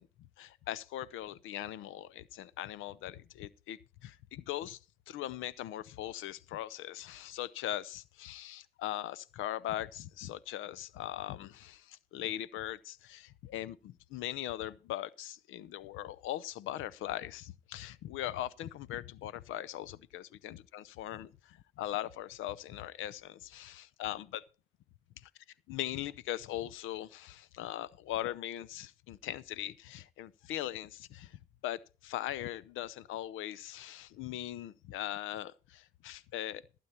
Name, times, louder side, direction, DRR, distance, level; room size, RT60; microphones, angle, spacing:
voice 1, 0.0-4.8 5.1-24.4 25.2-25.3 25.7-36.6, left 13 dB, 90° left, 0.6 m, -40 dB
15.5 x 8.5 x 4.4 m
cardioid pair, 90°, 20 cm